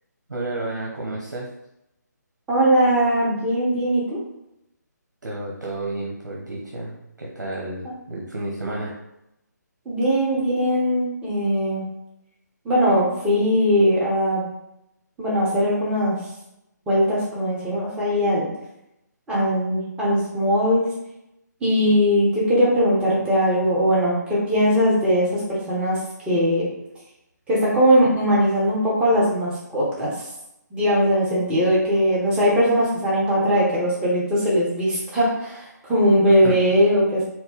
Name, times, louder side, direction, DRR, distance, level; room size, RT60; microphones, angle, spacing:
voice 1, 0.3-1.4 5.2-8.9 36.4-36.5, right 2 dB, 85° right, -3 dB, 1.0 m, -31 dB
voice 2, 2.5-4.0 9.8-11.8 12.6-14.5 15.2-16.2 16.9-18.5 19.3-20.9 21.6-26.0 26.2-26.7 27.5-30.3 30.7-37.2, equal, 10° right, -7 dB, 1.1 m, -20 dB
4.7 x 2.1 x 3.9 m, 0.86 s
figure-of-eight pair, 150°, 10 cm